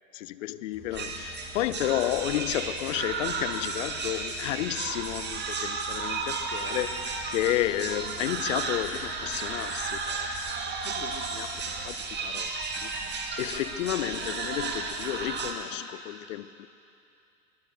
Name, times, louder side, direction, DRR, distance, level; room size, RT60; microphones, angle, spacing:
voice 1, 0.1-10.3 10.9-11.5 11.8-12.5 12.8-12.9 13.4-16.7, left 15 dB, 55° left, 0.6 m, -32 dB
sound 1, 0.7-12.1, left 3 dB, 15° left, 2.9 m, -50 dB
sound 2, 0.9-15.5, right 4 dB, 25° right, 1.6 m, -33 dB
23.5 x 21.5 x 2.7 m
figure-of-eight pair, 80°, 45 cm